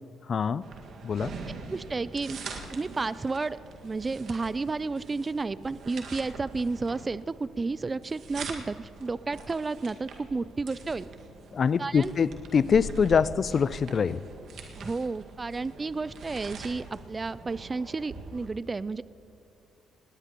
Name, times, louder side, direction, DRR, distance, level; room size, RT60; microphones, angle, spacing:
voice 1, 0.3-0.6 1.0-1.3 11.5-14.2, left 6 dB, 50° left, 18 dB, 0.4 m, -24 dB
sound 1, 0.6-18.5, right 3 dB, 65° right, 1.8 m, -43 dB
voice 2, 1.7-2.4 2.7-11.1 11.8-12.1 14.8-19.0, right 3 dB, 25° right, 17 dB, 0.3 m, -32 dB
19.5 x 17.5 x 3.0 m, 2.4 s
cardioid pair, 90°, 0 cm